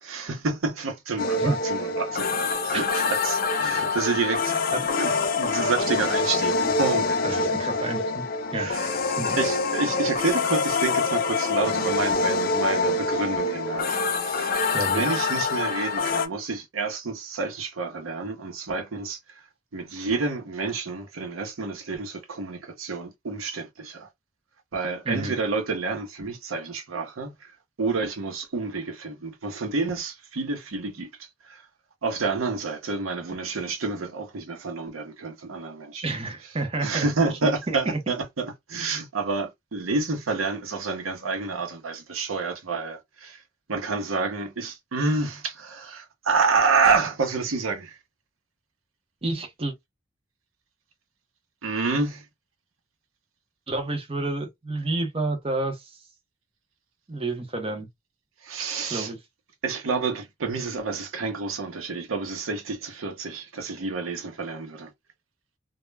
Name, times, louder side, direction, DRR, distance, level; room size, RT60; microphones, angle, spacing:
voice 1, 0.0-5.1 5.4-7.2 8.5-9.0 9.4-14.5 14.9-19.2 19.7-24.1 24.7-27.5 27.8-31.1 31.5-31.6 32.0-36.0 36.8-43.4 43.7-48.0 51.6-52.2 58.4-59.1 59.6-64.9, right 4 dB, 90° right, 0.7 m, -29 dB
sound 1, 1.2-16.3, left 4 dB, 45° left, 0.5 m, -25 dB
voice 2, 2.5-2.9 4.7-4.9 7.2-8.2 8.5-8.8 9.2-9.4 14.7-15.0 25.1-25.4 36.0-37.1 37.4-38.0 49.2-49.7 53.7-55.9 57.1-57.9 58.9-59.2, right 2 dB, 30° right, 0.6 m, -29 dB
2.2 x 2.0 x 3.2 m
head